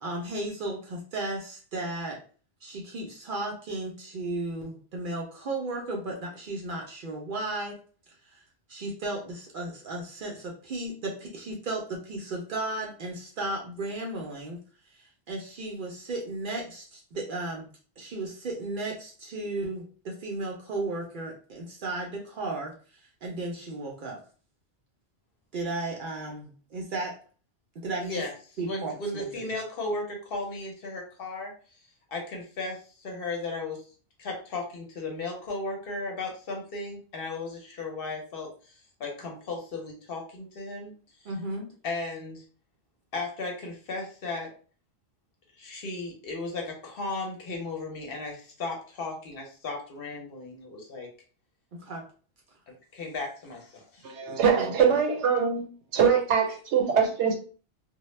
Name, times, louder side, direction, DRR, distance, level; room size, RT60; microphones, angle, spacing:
voice 1, 0.0-2.2 2.6-7.8 8.3-8.4 8.7-14.6 14.9-17.7 18.0-24.2 25.5-27.1 27.8-28.2 28.6-29.5 41.2-41.7 51.8-52.1 54.6-54.9, right 2 dB, 60° right, 0.6 m, -35 dB
voice 2, 28.0-28.3 28.6-31.5 32.1-33.8 34.2-38.7 39.0-40.9 41.8-42.4 43.1-44.5 45.6-51.1 52.7-54.1, left 3 dB, 60° left, 0.8 m, -35 dB
voice 3, 54.0-55.7 55.9-57.3, right 7 dB, 80° right, 0.9 m, -23 dB
2.1 x 2.0 x 3.0 m
omnidirectional pair, 1.2 m